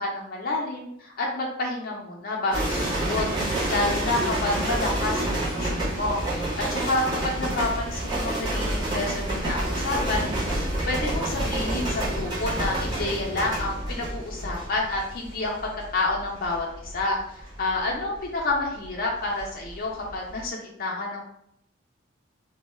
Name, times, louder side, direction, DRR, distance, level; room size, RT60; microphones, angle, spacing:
voice 1, 0.0-3.2 3.7-10.3 10.9-21.2, left 2 dB, 45° left, -1 dB, 0.5 m, -29 dB
sound 1, 2.5-19.7 20.0-20.4, right 1 dB, 20° right, 0.7 m, -28 dB
2.1 x 2.0 x 3.0 m, 0.75 s
head